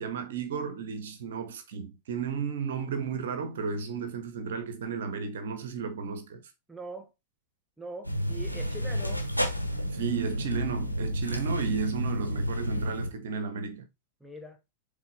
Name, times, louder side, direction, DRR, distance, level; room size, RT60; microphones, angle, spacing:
voice 1, 0.0-6.4 9.9-13.9, right 6 dB, 60° right, 1.3 m, -33 dB
voice 2, 6.7-7.1 7.8-9.3 14.2-14.6, right 2 dB, 5° right, 1.0 m, -42 dB
sound 1, 8.0-13.1, equal, 85° right, 0.9 m, -30 dB
7.3 x 3.8 x 4.1 m
figure-of-eight pair, 90°, 0 cm